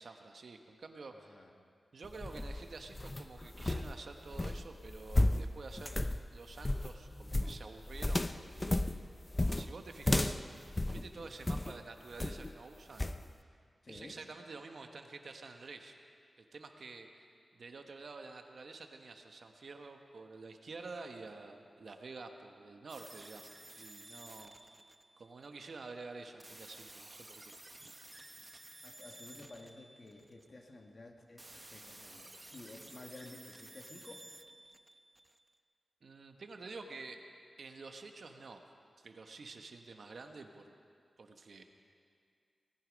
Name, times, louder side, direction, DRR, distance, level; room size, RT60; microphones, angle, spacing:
voice 1, 0.0-1.4 1.9-6.0 6.3-8.8 9.2-13.1 13.9-15.9 16.5-17.3 17.5-24.6 25.2-27.5 27.8-28.0 36.0-37.2 37.6-38.6 39.0-40.7 41.2-41.6, right 3 dB, 65° right, 5 dB, 1.2 m, -49 dB
voice 2, 1.1-1.5 13.8-14.2 28.8-34.3, left 2 dB, 45° left, 2 dB, 1.7 m, -53 dB
sound 1, 2.0-11.7 12.2-12.5 13.0-13.2, left 1 dB, 20° left, 0.5 m, -34 dB
sound 2, 22.9-25.6 26.4-30.5 31.4-35.5, right 2 dB, 20° right, 0.7 m, -54 dB
19.0 x 14.5 x 5.2 m, 2.3 s
wide cardioid pair, 110°, 0 cm